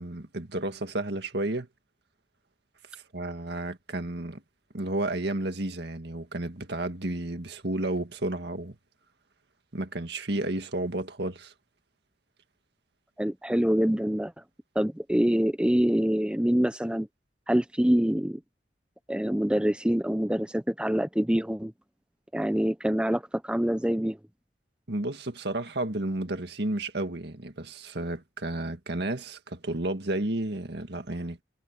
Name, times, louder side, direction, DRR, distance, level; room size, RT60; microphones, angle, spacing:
voice 1, 0.0-1.7 2.9-4.4 4.7-8.8 9.7-11.5 24.9-31.4, right 2 dB, 65° right, 1.9 m, -32 dB
voice 2, 13.2-14.4 14.7-17.1 17.5-18.4 19.1-21.7 22.3-24.2, equal, 5° right, 0.7 m, -25 dB
head